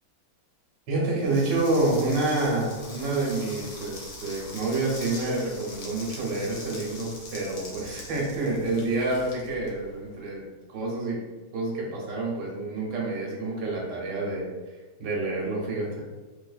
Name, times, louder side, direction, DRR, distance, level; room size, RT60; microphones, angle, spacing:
voice 1, 0.9-10.4 10.7-11.2 11.5-14.5 15.0-16.1, right 2 dB, 80° right, -3 dB, 1.6 m, -28 dB
sound 1, 1.2-10.2, left 2 dB, 90° left, 1.5 m, -42 dB
3.3 x 3.1 x 2.4 m, 1.3 s
omnidirectional pair, 1.9 m